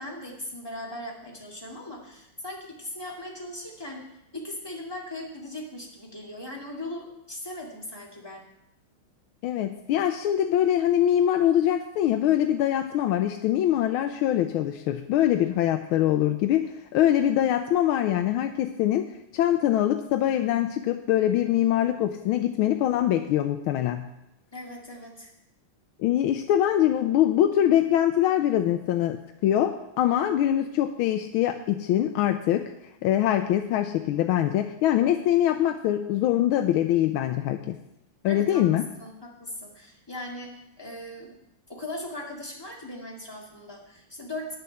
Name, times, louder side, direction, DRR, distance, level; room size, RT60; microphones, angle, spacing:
voice 1, 0.0-4.0 4.3-8.4 24.5-25.3 38.3-38.6 39.0-41.3 41.7-44.6, left 1 dB, 10° left, -2 dB, 2.0 m, -39 dB
voice 2, 9.4-24.1 26.0-32.7 33.0-37.8 38.2-38.9, left 11 dB, 85° left, 6 dB, 1.4 m, -23 dB
9.7 x 6.9 x 6.9 m, 0.85 s
omnidirectional pair, 2.2 m